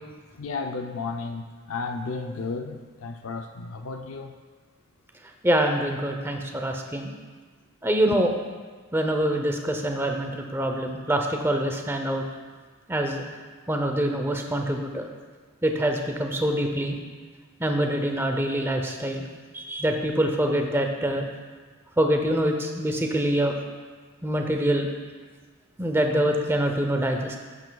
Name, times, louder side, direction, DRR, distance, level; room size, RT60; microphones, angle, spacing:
voice 1, 0.4-4.4 8.1-8.2, left 4 dB, 70° left, 5 dB, 0.5 m, -33 dB
voice 2, 5.4-7.1 7.8-8.3 8.9-12.2 12.9-13.2 13.7-15.0 15.6-17.0 17.6-19.2 19.5-21.3 22.0-23.6 24.2-24.9 25.8-27.4, right 1 dB, 10° right, 3 dB, 0.6 m, -25 dB
12.0 x 7.8 x 2.3 m, 1.4 s
head